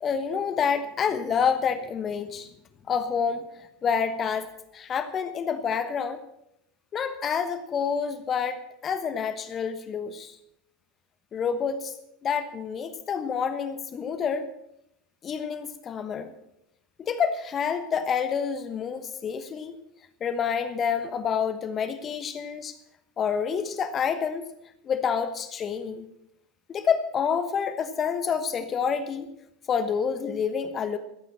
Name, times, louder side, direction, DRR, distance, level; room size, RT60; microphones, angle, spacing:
voice 1, 0.0-2.5 2.9-6.2 6.9-10.4 11.3-11.9 12.2-14.5 15.2-16.3 17.0-19.7 20.2-22.8 23.2-24.4 24.8-26.1 26.7-29.3 29.7-31.0, left 6 dB, 30° left, 10 dB, 1.1 m, -28 dB
14.0 x 9.1 x 7.3 m, 0.81 s
figure-of-eight pair, 80°, 0 cm